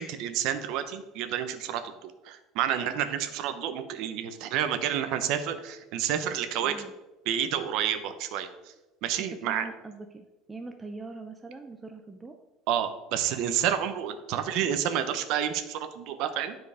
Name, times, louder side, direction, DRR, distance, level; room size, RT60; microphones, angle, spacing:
voice 1, 0.0-6.8 7.3-8.7 9.0-9.7 12.7-16.6, right 9 dB, 60° right, 9 dB, 0.8 m, -29 dB
voice 2, 9.2-12.3, right 3 dB, 10° right, 5 dB, 0.5 m, -42 dB
9.6 x 4.6 x 4.9 m, 1.0 s
cardioid pair, 160°, 0 cm